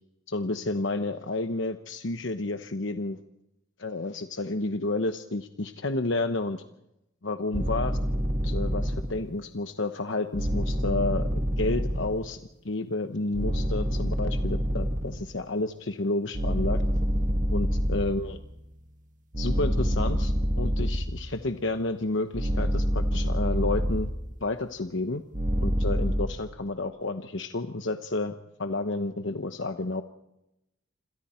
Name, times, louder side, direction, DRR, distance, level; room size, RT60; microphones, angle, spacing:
voice 1, 0.3-3.2 3.8-6.6 7.2-8.0 8.4-12.4 12.6-16.8 17.5-18.4 19.4-24.1 24.4-25.2 25.6-30.0, left 2 dB, 65° left, 7 dB, 1.0 m, -30 dB
sound 1, 7.5-9.3 10.3-12.3 13.3-15.3 16.3-18.5 19.3-21.5 22.3-24.3 25.3-26.3, equal, 35° right, 2.0 m, -27 dB
27.5 x 27.0 x 4.4 m, 0.87 s
head